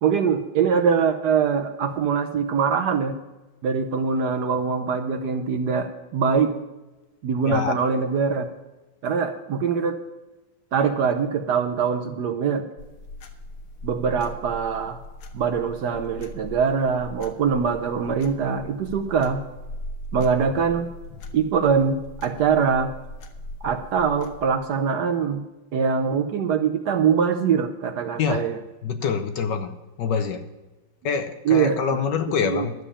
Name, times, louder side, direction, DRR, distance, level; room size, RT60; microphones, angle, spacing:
voice 1, 0.0-3.1 3.6-6.5 7.2-8.4 9.0-10.0 10.7-12.6 13.8-15.0 15.3-19.4 20.1-20.9 21.3-22.9 23.6-25.4 25.7-28.6 31.4-31.8 32.4-32.7, right 6 dB, 65° right, 7 dB, 1.1 m, -23 dB
sound 1, 12.8-24.5, left 1 dB, 85° left, 1.9 m, -40 dB
voice 2, 28.8-29.7 30.0-30.4 31.0-32.7, left 6 dB, 65° left, 9 dB, 1.3 m, -25 dB
11.0 x 7.1 x 8.4 m, 1.1 s
omnidirectional pair, 2.3 m